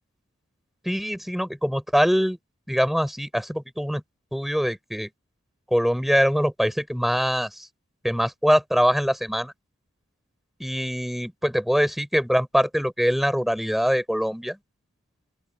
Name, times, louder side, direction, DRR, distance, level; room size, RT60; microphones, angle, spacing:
voice 1, 0.8-2.4 2.7-4.0 4.3-5.1 5.7-7.7 8.0-9.5 10.6-14.6, equal, ahead, 6.5 m, -23 dB
open air
head